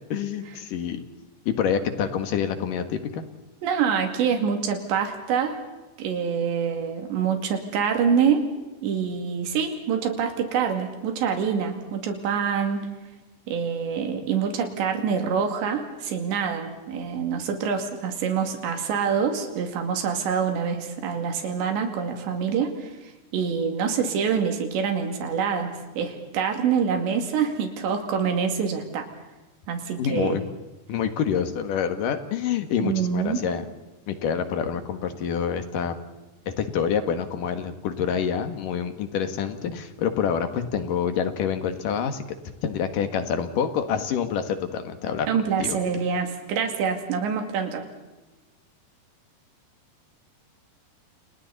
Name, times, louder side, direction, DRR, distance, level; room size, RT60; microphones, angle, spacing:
voice 1, 0.1-1.0 1.5-3.2 30.0-30.4 30.9-33.6 34.1-35.9 36.5-42.2 42.6-45.3 45.6-45.8, left 7 dB, 60° left, 8 dB, 2.8 m, -27 dB
voice 2, 3.6-5.6 6.0-8.5 8.8-12.8 13.5-29.1 29.7-30.4 32.8-33.4 45.3-47.9, right 7 dB, 85° right, 4 dB, 4.7 m, -26 dB
29.5 x 29.0 x 4.2 m, 1.1 s
omnidirectional pair, 5.0 m